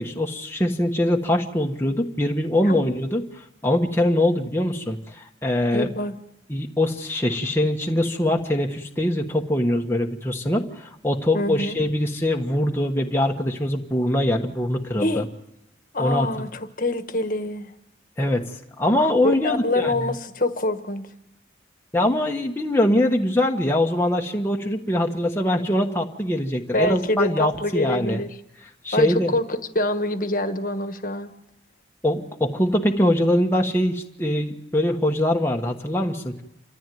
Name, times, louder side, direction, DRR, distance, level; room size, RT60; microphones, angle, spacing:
voice 1, 0.0-5.9 6.5-15.2 16.0-16.3 18.2-20.1 21.9-28.2 28.8-29.3 32.0-36.4, left 1 dB, 15° left, 1 dB, 1.3 m, -23 dB
voice 2, 5.7-6.2 11.3-11.8 15.0-15.3 15.9-17.7 19.2-21.1 26.7-28.3 28.9-31.3, left 1 dB, 45° left, 8 dB, 1.5 m, -25 dB
28.0 x 14.0 x 9.4 m, 0.84 s
head